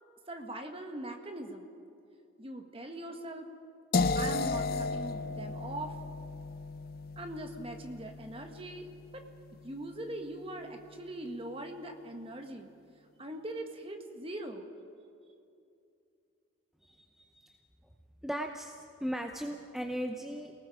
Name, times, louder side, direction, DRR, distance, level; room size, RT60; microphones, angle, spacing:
voice 1, 0.3-1.7 2.4-3.5 4.1-5.9 7.2-8.9 9.1-9.3 9.6-12.7 13.2-14.7, right 1 dB, 30° right, 5 dB, 1.5 m, -41 dB
sound 1, 3.9-9.8, left 3 dB, 50° left, 0.5 m, -34 dB
voice 2, 16.8-17.6 18.2-20.5, equal, ahead, 3 dB, 0.7 m, -38 dB
28.0 x 18.5 x 4.9 m, 2.6 s
head